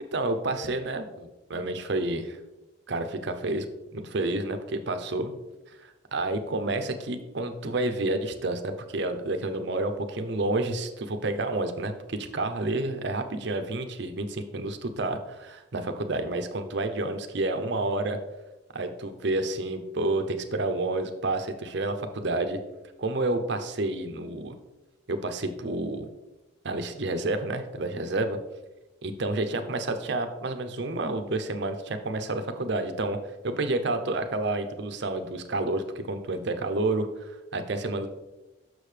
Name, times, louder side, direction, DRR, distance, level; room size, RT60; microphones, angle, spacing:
voice 1, 0.1-2.4 2.9-3.7 3.9-5.3 5.7-18.2 18.7-22.6 23.0-24.5 25.1-26.1 26.6-28.4 29.0-33.2 33.4-38.1, right 2 dB, 55° right, 7 dB, 0.6 m, -29 dB
6.6 x 6.3 x 3.3 m, 1.0 s
head